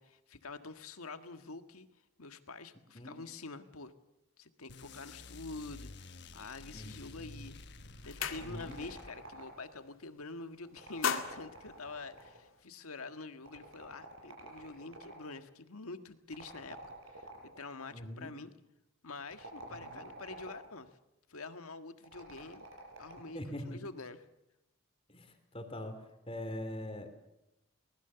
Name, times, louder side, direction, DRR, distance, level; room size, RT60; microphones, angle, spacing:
voice 1, 0.0-1.9 2.2-3.9 4.4-7.6 8.0-16.8 17.1-18.5 19.0-20.9 21.3-22.6 23.0-24.2, left 3 dB, 90° left, 9 dB, 1.6 m, -47 dB
sound 1, 4.7-9.5, left 2 dB, 50° left, 1.2 m, -51 dB
voice 2, 6.7-7.1 8.4-8.8 17.9-18.3 19.7-20.0 23.3-23.8 25.1-27.1, left 1 dB, 25° left, 7 dB, 2.9 m, -43 dB
sound 2, 7.4-7.5 7.8-8.9 9.3-9.5 9.8-10.4 10.7-12.6, left 7 dB, 70° left, 2.0 m, -38 dB
sound 3, 8.2-9.8 10.6-12.5 13.4-15.3 16.3-17.6 19.2-20.8 22.0-23.4, right 1 dB, 65° right, 6.6 m, -50 dB
23.5 x 20.0 x 6.9 m, 0.89 s
head